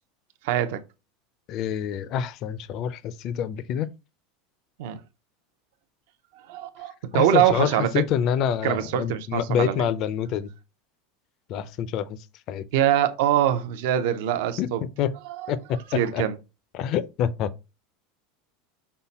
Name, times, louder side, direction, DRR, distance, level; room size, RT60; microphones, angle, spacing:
voice 1, 0.4-0.8 4.8-5.0 6.5-8.0 8.6-9.9 12.7-14.8 15.9-16.3, right 11 dB, 65° right, 0.6 m, -23 dB
voice 2, 1.5-3.9 7.1-10.5 11.5-12.2 12.5-12.6 14.6-14.7 15.0-15.1 15.5-15.8 16.1-16.2 16.7-17.5, left 9 dB, 40° left, 0.4 m, -26 dB
5.5 x 2.1 x 4.0 m
supercardioid pair, 165°, 0 cm